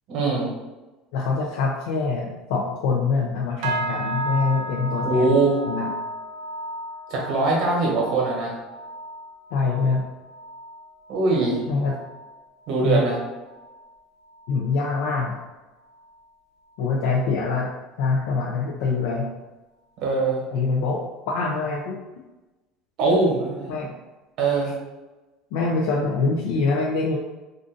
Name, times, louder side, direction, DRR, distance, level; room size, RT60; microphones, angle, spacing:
voice 1, 0.1-0.5 5.0-5.6 7.1-8.5 11.1-11.6 12.7-13.2 20.0-20.4 23.0-23.8 24.4-24.7, right 3 dB, 45° right, -3 dB, 1.0 m, -22 dB
voice 2, 1.1-5.3 5.7-5.9 9.5-10.0 11.7-11.9 12.8-13.0 14.5-15.4 16.8-17.7 18.0-19.3 20.5-22.0 23.7-23.9 25.5-27.2, left 4 dB, 75° left, -2 dB, 0.4 m, -24 dB
sound 1, 3.6-13.2 13.5-13.9 14.3-14.6 15.2-15.3, right 1 dB, 70° right, 0.4 m, -34 dB
2.5 x 2.5 x 3.7 m, 1.1 s
cardioid pair, 175°, 0 cm